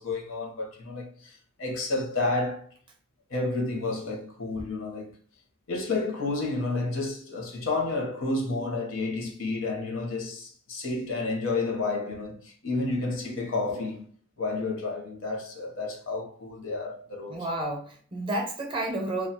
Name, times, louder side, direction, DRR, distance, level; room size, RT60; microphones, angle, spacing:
voice 1, 0.0-2.7 3.3-5.2 5.7-14.0 14.4-17.5, left 3 dB, 65° left, 0.7 m, -31 dB
voice 2, 17.3-19.3, right 1 dB, 25° right, 0.5 m, -31 dB
2.3 x 2.3 x 2.6 m
head